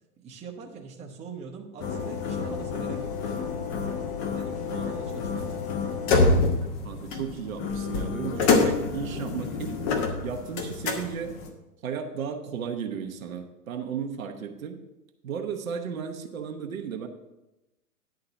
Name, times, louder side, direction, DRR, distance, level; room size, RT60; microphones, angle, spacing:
voice 1, 0.2-3.4 4.3-5.6, right 5 dB, 15° right, -1 dB, 0.9 m, -42 dB
sound 1, 1.8-11.5, left 4 dB, 30° left, 1.0 m, -27 dB
voice 2, 6.8-9.8 10.2-11.4 11.8-14.8 15.2-17.1, right 7 dB, 60° right, 4 dB, 1.1 m, -34 dB
10.5 x 3.8 x 6.9 m, 0.98 s
figure-of-eight pair, 110°, 46 cm